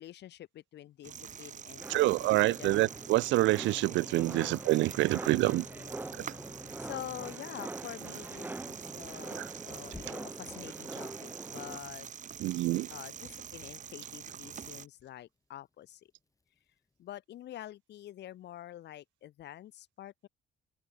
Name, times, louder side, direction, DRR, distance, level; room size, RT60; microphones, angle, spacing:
voice 1, 0.0-2.8 4.3-4.5 5.0-5.1 5.7-6.3 6.8-12.1 12.9-16.1 17.0-20.3, left 13 dB, 65° left, 5.0 m, -47 dB
sound 1, 1.0-14.9, right 8 dB, 40° right, 2.7 m, -46 dB
sound 2, 1.6-7.3 9.9-10.6, left 3 dB, 15° left, 3.8 m, -53 dB
sound 3, 1.8-11.8, right 2 dB, 10° right, 1.4 m, -44 dB
voice 2, 1.9-5.6 9.3-9.5 12.4-12.9, right 18 dB, 85° right, 0.8 m, -27 dB
cardioid pair, 140°, 19 cm